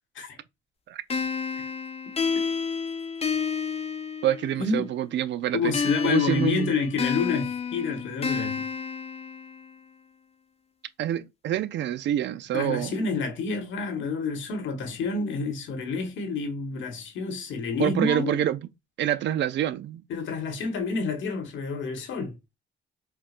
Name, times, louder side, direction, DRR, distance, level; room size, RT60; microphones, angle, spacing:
sound 1, 1.1-4.7 5.7-9.7, left 5 dB, 30° left, 0.7 m, -30 dB
voice 1, 4.2-5.6 6.0-6.7 11.0-12.9 17.8-18.6 19.0-20.0, right 11 dB, 65° right, 0.4 m, -26 dB
voice 2, 5.5-8.6 12.5-18.4 20.1-22.3, left 4 dB, 75° left, 1.2 m, -29 dB
4.5 x 2.2 x 2.4 m
cardioid pair, 90°, 20 cm